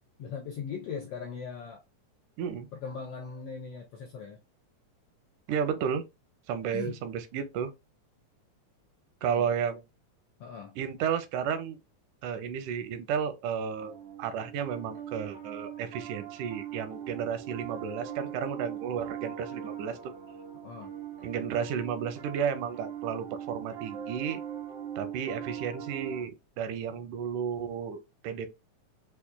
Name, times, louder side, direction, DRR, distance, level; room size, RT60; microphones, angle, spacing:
voice 1, 0.2-1.8 2.7-4.4 6.7-7.0 9.2-9.5 10.4-10.8 20.6-21.0, left 6 dB, 80° left, 1.4 m, -39 dB
voice 2, 2.4-2.7 5.5-6.0 6.5-7.7 9.2-9.9 10.8-11.8 12.2-20.0 21.2-24.4 25.0-28.0 28.2-28.5, right 7 dB, 90° right, 2.1 m, -32 dB
Piano, 13.8-26.2, right 9 dB, 70° right, 1.0 m, -41 dB
5.6 x 2.4 x 2.2 m
omnidirectional pair, 3.5 m